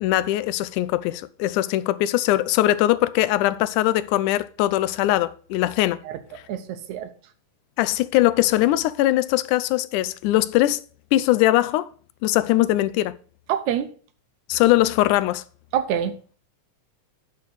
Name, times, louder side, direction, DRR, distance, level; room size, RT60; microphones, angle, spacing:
voice 1, 0.0-6.0 7.8-10.8 11.1-11.9 12.2-13.2 14.5-15.4, left 15 dB, 85° left, 2.0 m, -21 dB
voice 2, 6.5-7.1 13.5-13.9 15.7-16.1, right 9 dB, 75° right, 2.1 m, -25 dB
6.7 x 6.0 x 6.8 m
omnidirectional pair, 3.5 m